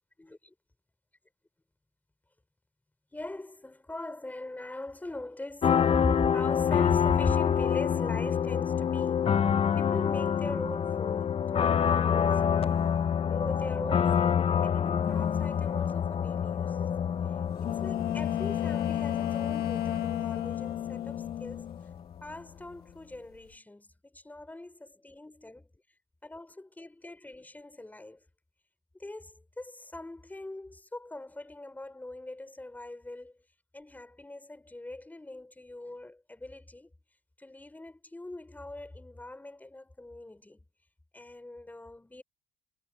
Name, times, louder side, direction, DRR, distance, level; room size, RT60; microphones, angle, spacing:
voice 1, 0.2-0.5 3.1-9.3 9.8-12.8 13.3-17.0 17.3-21.7 22.2-25.7 26.2-28.2 28.9-33.4 33.7-36.9 37.4-40.6 41.1-42.2, left 2 dB, 10° left, 4.3 m, -41 dB
sound 1, 5.6-22.1, left 8 dB, 35° left, 0.7 m, -27 dB
sound 2, 15.1-15.7 17.6-22.3 22.5-23.4, left 12 dB, 65° left, 1.3 m, -33 dB
cardioid pair, 110°, 17 cm